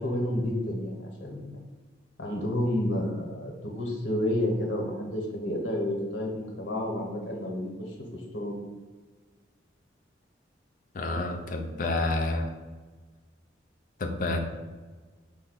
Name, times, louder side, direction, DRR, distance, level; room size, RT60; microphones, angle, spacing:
voice 1, 0.0-1.6 2.2-8.6, left 1 dB, 80° left, 0 dB, 0.9 m, -30 dB
voice 2, 10.9-12.5 14.0-14.4, left 2 dB, 45° left, 4 dB, 0.4 m, -29 dB
5.2 x 2.2 x 4.0 m, 1.3 s
head